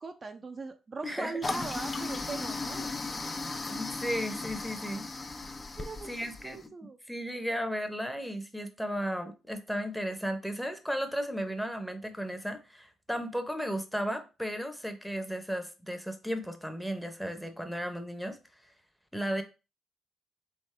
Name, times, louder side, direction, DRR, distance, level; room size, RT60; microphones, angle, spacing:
voice 1, 0.0-2.9 5.8-6.1 6.4-7.0 17.4-17.5, right 4 dB, 35° right, 5 dB, 0.5 m, -40 dB
voice 2, 1.0-1.4 3.7-5.0 6.0-6.7 7.1-18.4 19.1-19.4, equal, ahead, 7 dB, 0.8 m, -34 dB
Toilet flush, 1.4-6.6, left 3 dB, 30° left, 0.4 m, -36 dB
3.8 x 3.6 x 3.2 m, 0.30 s
cardioid pair, 90°, 0 cm